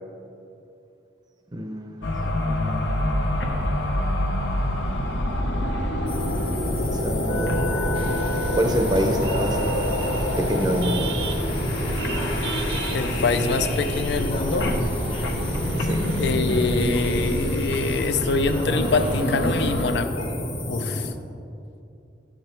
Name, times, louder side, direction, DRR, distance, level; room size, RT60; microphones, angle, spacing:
voice 1, 1.5-3.2 6.3-6.5 6.8-7.6 8.6-9.6 10.4-11.2 15.8-16.0, equal, 25° right, 5 dB, 0.6 m, -27 dB
sound 1, 2.0-19.9, left 1 dB, 85° left, 0.8 m, -27 dB
sound 2, 6.1-21.1, left 1 dB, 30° left, 0.8 m, -30 dB
sound 3, 7.9-19.8, right 3 dB, 70° right, 0.6 m, -34 dB
voice 2, 12.9-14.7 16.2-20.3 20.7-21.1, left 3 dB, 70° left, 9 dB, 0.5 m, -25 dB
11.5 x 5.1 x 4.4 m, 2.7 s
head